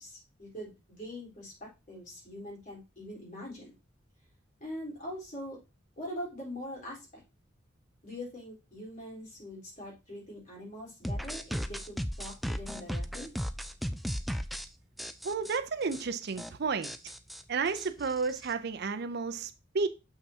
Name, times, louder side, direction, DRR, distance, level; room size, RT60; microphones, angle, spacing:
voice 1, 0.0-3.7 4.6-5.6 6.0-7.2 8.0-13.3, equal, 40° left, 3.9 m, -43 dB
sound 1, 11.0-14.7 15.0-15.6 15.9-16.0 16.3-16.5 16.8-18.5, equal, ahead, 0.3 m, -36 dB
voice 2, 15.2-16.9 17.5-19.9, right 4 dB, 55° right, 0.5 m, -32 dB
6.8 x 5.7 x 2.8 m
head